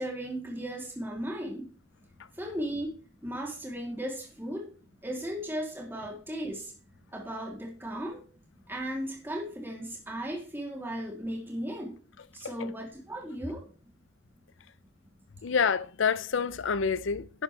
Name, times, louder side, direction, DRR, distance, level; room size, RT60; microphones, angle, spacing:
voice 1, 0.0-1.7 2.3-4.7 5.0-6.7 7.1-8.2 8.6-12.0 12.3-13.7, equal, 10° right, 2.9 m, -36 dB
voice 2, 15.4-17.4, left 6 dB, 75° left, 0.5 m, -28 dB
11.5 x 9.5 x 3.3 m
head